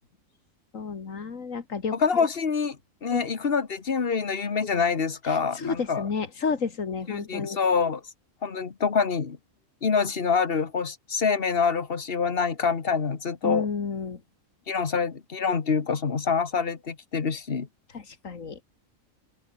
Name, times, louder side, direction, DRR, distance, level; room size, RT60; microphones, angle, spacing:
voice 1, 0.7-2.3 3.1-3.2 5.3-7.6 13.4-14.2 17.9-18.6, left 5 dB, 70° left, 2.3 m, -31 dB
voice 2, 2.0-6.0 7.1-8.0 8.4-9.4 9.8-13.7 14.7-17.7, left 5 dB, 45° left, 1.6 m, -26 dB
omnidirectional pair, 1.4 m